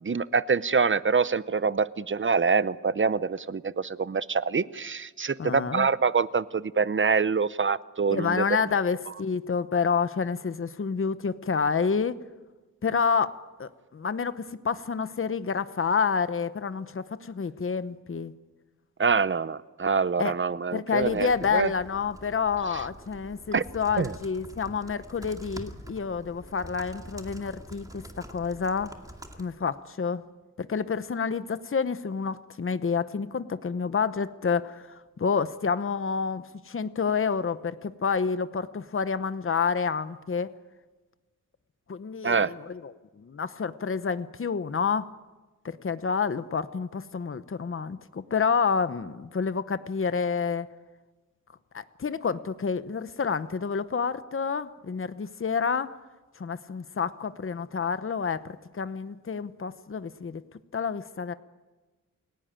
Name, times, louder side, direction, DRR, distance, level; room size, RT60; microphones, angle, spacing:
voice 1, 0.0-8.4 19.0-21.7 23.5-23.6 24.0-24.1 42.2-42.5, right 5 dB, 40° right, 16 dB, 0.7 m, -25 dB
voice 2, 5.4-5.9 8.1-12.2 12.8-13.3 13.6-18.3 20.2-20.3 20.7-28.9 29.4-30.2 30.6-40.5 41.9-45.1 45.6-50.7 51.7-55.9 56.4-60.4 60.7-61.3, left 5 dB, 45° left, 13 dB, 0.9 m, -29 dB
sound 1, 21.0-29.4, right 1 dB, 10° right, 2.3 m, -46 dB
29.0 x 17.5 x 9.0 m, 1.2 s
wide cardioid pair, 125°, 30 cm